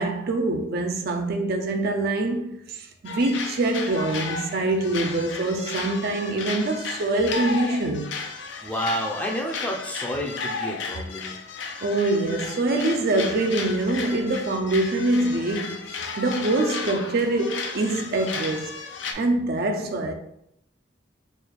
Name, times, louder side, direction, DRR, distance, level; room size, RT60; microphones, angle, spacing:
voice 1, 0.0-8.1 11.8-15.8 16.2-18.7 19.2-20.1, right 2 dB, 55° right, 0.4 m, -24 dB
sound 1, 3.0-19.1, left 4 dB, 75° left, 0.5 m, -34 dB
voice 2, 8.6-11.4, equal, 10° left, 0.5 m, -30 dB
3.4 x 2.3 x 4.4 m
head